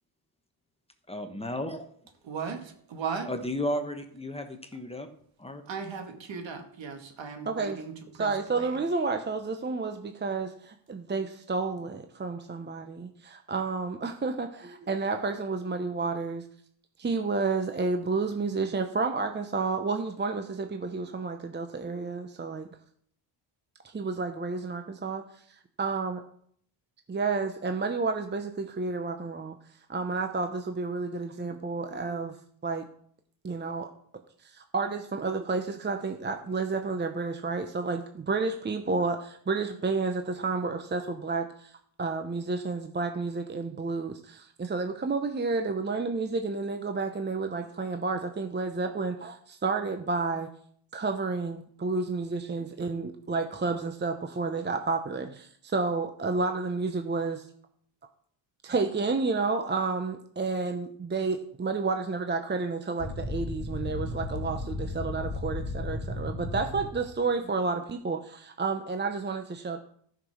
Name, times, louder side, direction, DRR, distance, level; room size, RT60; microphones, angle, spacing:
voice 1, 1.1-1.8 3.3-5.1 5.4-5.6, left 1 dB, 10° left, 1.2 m, -33 dB
voice 2, 2.3-2.6 2.9-3.3 5.7-8.7, right 6 dB, 65° right, 2.2 m, -37 dB
voice 3, 7.5-7.8 8.2-16.4 17.0-22.7 23.8-25.2 25.8-26.2 27.1-29.6 29.9-32.3 32.6-32.8 33.4-33.9 34.4-41.7 42.0-50.5 50.9-57.5 58.6-69.8, right 4 dB, 20° right, 0.8 m, -30 dB
sound 1, 63.0-67.2, left 2 dB, 50° left, 3.1 m, -35 dB
13.5 x 6.1 x 6.3 m
cardioid pair, 105°, 48 cm